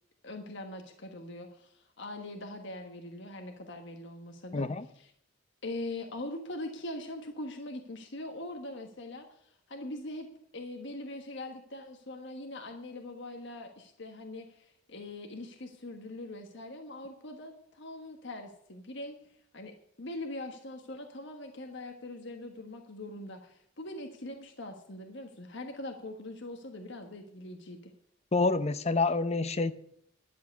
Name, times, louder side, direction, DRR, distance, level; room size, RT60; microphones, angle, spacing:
voice 1, 0.2-4.7 4.9-5.1 5.6-10.3 10.5-19.1 19.5-27.9, left 1 dB, 65° left, 4 dB, 1.4 m, -42 dB
voice 2, 4.5-4.9 28.3-29.7, left 3 dB, 35° left, 13 dB, 0.7 m, -27 dB
11.0 x 7.6 x 9.4 m, 0.69 s
head